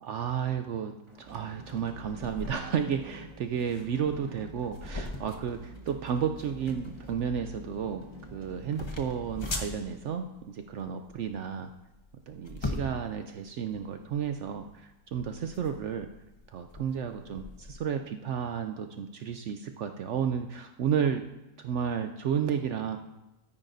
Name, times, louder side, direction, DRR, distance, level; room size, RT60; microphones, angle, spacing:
voice 1, 0.0-8.0 8.3-11.7 12.3-16.1 16.5-21.2 21.6-23.0, right 7 dB, 80° right, 7 dB, 0.6 m, -32 dB
sound 1, 1.1-10.5, right 1 dB, 20° right, 1.1 m, -49 dB
sound 2, 2.0-17.8, left 2 dB, 25° left, 0.6 m, -42 dB
13.0 x 9.8 x 2.6 m, 0.97 s
omnidirectional pair, 1.8 m